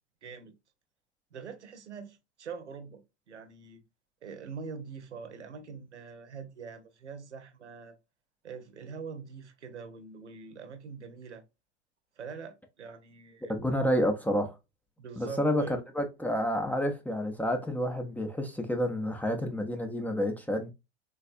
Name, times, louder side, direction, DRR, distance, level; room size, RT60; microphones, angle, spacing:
voice 1, 0.2-0.5 1.3-3.0 3.3-3.8 4.2-8.0 8.4-11.4 12.2-13.6 15.0-15.7, right 5 dB, 80° right, 0.7 m, -44 dB
voice 2, 13.5-14.5 15.2-20.7, equal, 5° left, 0.4 m, -29 dB
3.4 x 2.3 x 2.4 m
figure-of-eight pair, 80°, 34 cm